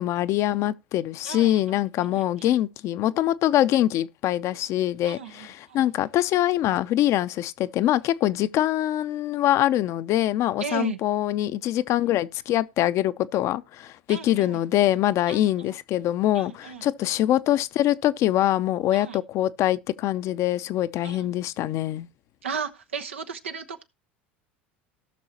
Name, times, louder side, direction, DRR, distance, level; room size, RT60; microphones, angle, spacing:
voice 1, 0.0-22.1, left 13 dB, 50° left, 0.6 m, -24 dB
voice 2, 1.2-1.8 2.1-2.6 5.0-5.8 10.6-11.0 14.1-14.6 15.3-15.7 16.3-16.8 18.9-19.2 21.0-21.3 22.4-23.8, right 6 dB, 90° right, 1.1 m, -35 dB
17.5 x 6.2 x 2.9 m
hypercardioid pair, 80°, 6 cm